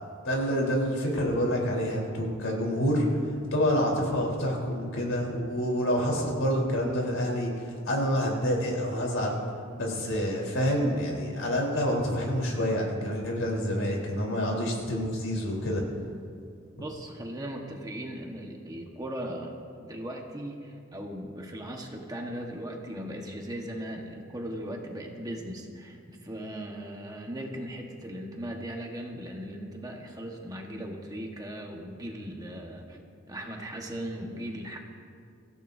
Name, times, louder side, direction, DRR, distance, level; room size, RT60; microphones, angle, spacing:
voice 1, 0.2-3.1 3.5-9.4 9.8-15.8, equal, 70° left, -2 dB, 4.0 m, -27 dB
voice 2, 16.8-33.0 33.3-34.8, equal, 20° right, 0 dB, 1.4 m, -38 dB
25.0 x 15.5 x 2.8 m, 2.3 s
head